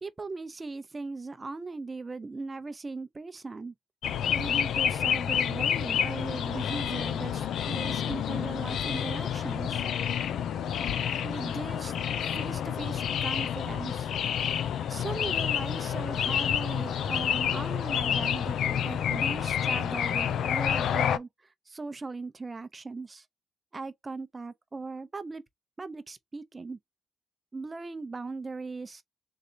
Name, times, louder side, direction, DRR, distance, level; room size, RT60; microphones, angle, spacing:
voice 1, 0.0-3.7 4.3-9.8 11.2-11.9 12.3-14.1 14.9-23.3 23.7-25.4 25.8-26.8 27.5-29.0, right 3 dB, 25° right, 0.6 m, -38 dB
sound 1, 4.0-21.2, left 9 dB, 80° left, 0.4 m, -29 dB
3.8 x 3.3 x 2.8 m
cardioid pair, 95°, 0 cm